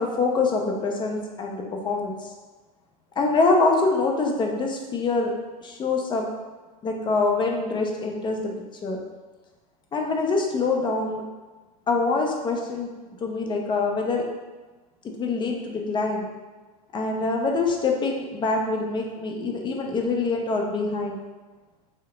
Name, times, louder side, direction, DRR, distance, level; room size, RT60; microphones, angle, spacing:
voice 1, 0.0-2.3 3.2-5.3 5.6-6.3 6.8-8.5 8.8-9.0 9.9-11.2 11.9-12.9 13.2-14.2 15.0-16.3 16.9-21.2, left 3 dB, 25° left, 1 dB, 0.5 m, -25 dB
2.8 x 2.1 x 3.8 m, 1.2 s
hypercardioid pair, 105°, 20 cm